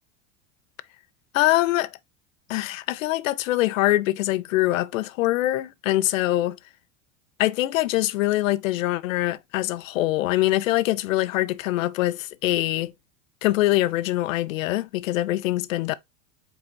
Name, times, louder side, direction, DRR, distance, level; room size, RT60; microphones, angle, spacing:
voice 1, 1.3-1.9 2.5-6.6 7.4-12.9 13.4-15.9, left 16 dB, 75° left, 0.6 m, -23 dB
5.3 x 4.2 x 2.2 m
hypercardioid pair, 90°, 39 cm